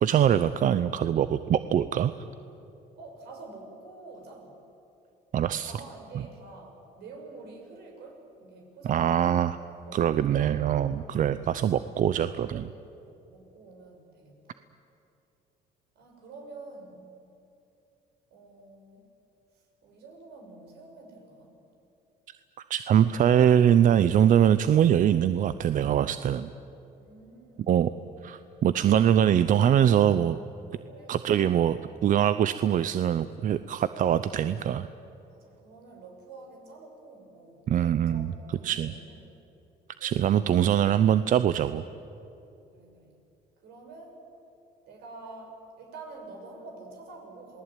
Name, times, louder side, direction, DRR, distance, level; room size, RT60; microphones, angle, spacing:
voice 1, 0.0-2.1 5.3-5.7 8.9-9.6 9.9-12.7 22.7-26.5 27.7-27.9 28.2-30.4 31.1-31.8 32.0-34.9 37.7-38.3 38.6-38.9 40.0-41.8, right 9 dB, 50° right, 13 dB, 0.7 m, -23 dB
voice 2, 3.0-4.5 5.6-9.3 9.7-10.9 13.0-14.6 15.9-17.1 18.3-19.1 19.5-21.5 27.0-27.7 30.9-31.5 35.3-39.2 40.0-40.3 42.7-43.2 43.6-44.3 44.9-47.6, right 3 dB, 75° right, 2 dB, 6.6 m, -47 dB
28.0 x 19.5 x 9.2 m, 2.8 s
cardioid pair, 110°, 17 cm